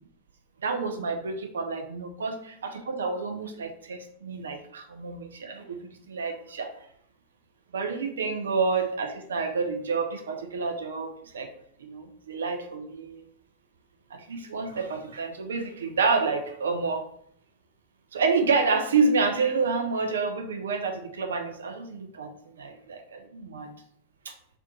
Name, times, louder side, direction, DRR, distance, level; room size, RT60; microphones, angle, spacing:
voice 1, 0.6-6.8 7.7-11.5 11.8-13.2 14.1-17.0 18.1-22.3 22.6-23.7 24.3-24.4, right 4 dB, 65° right, 5 dB, 0.3 m, -29 dB
2.4 x 2.1 x 2.7 m, 0.68 s
figure-of-eight pair, 90°, 0 cm